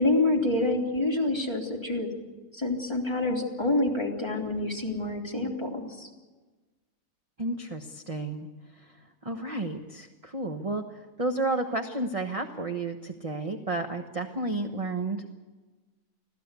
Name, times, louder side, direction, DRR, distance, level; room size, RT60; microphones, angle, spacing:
voice 1, 0.0-2.1 2.5-6.1, left 2 dB, 15° left, -1 dB, 3.2 m, -27 dB
voice 2, 7.4-8.5 9.2-10.8 11.2-15.3, right 2 dB, 25° right, 5 dB, 1.1 m, -31 dB
25.0 x 16.5 x 8.3 m, 1.3 s
omnidirectional pair, 1.7 m